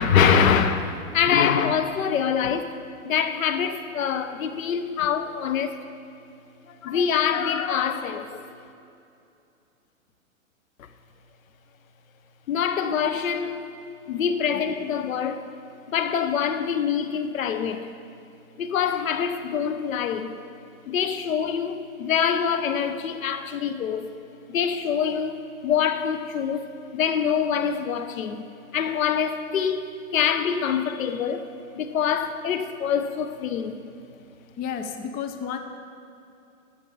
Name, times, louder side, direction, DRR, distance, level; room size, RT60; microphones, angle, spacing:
voice 1, 0.0-2.7 3.0-5.7 6.7-8.5 12.5-13.6 14.1-15.5 15.9-17.9 18.6-20.3 20.9-24.1 24.5-28.5 28.7-33.8, left 7 dB, 75° left, 1.0 m, -25 dB
voice 2, 34.6-35.6, left 7 dB, 20° left, 0.7 m, -32 dB
13.5 x 7.8 x 5.6 m
hypercardioid pair, 135°, 41 cm